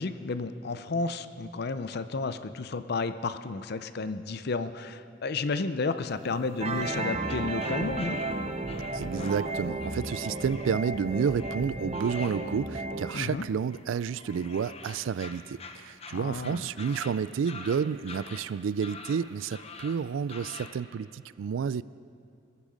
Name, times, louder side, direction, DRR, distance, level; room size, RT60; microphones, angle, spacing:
voice 1, 0.0-8.2 13.1-13.4 16.1-16.6, left 3 dB, 55° left, 12 dB, 0.6 m, -32 dB
sound 1, 6.0-20.8, left 4 dB, 30° left, 0.9 m, -47 dB
sound 2, 6.6-13.1, right 2 dB, 35° right, 0.8 m, -33 dB
voice 2, 8.9-21.8, right 6 dB, 80° right, 19 dB, 0.3 m, -30 dB
21.5 x 8.8 x 6.4 m, 2.4 s
head